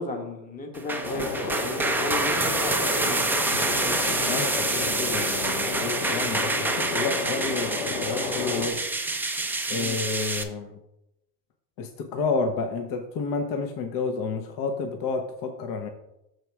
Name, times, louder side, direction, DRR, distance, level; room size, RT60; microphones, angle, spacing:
voice 1, 0.0-4.0 9.7-10.0, left 2 dB, 15° left, 3 dB, 1.2 m, -34 dB
sound 1, 0.7-10.4, right 2 dB, 5° right, 0.4 m, -27 dB
sound 2, 1.0-8.7, left 3 dB, 65° left, 1.9 m, -32 dB
voice 2, 4.2-8.8 9.7-10.8 11.8-15.9, left 4 dB, 45° left, 5 dB, 1.0 m, -30 dB
6.4 x 4.7 x 4.7 m, 0.86 s
hypercardioid pair, 95°, 49 cm